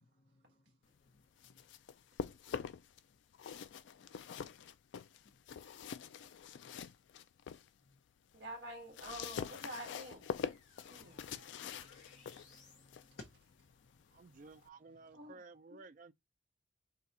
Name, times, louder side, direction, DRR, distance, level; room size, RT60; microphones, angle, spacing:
sound 1, 1.2-3.0 3.3-7.7 8.1-14.7, left 7 dB, 75° left, 0.3 m, -45 dB
voice 1, 8.3-10.3 10.8-11.3 15.1-15.4 15.7-15.8, right 1 dB, 65° right, 1.9 m, -48 dB
sound 2, 9.0-12.9, left 3 dB, 40° left, 1.2 m, -65 dB
voice 2, 11.0-13.3, left 2 dB, 55° left, 0.8 m, -59 dB
voice 3, 14.1-16.1, right 3 dB, 45° right, 0.4 m, -55 dB
3.8 x 2.3 x 4.2 m
head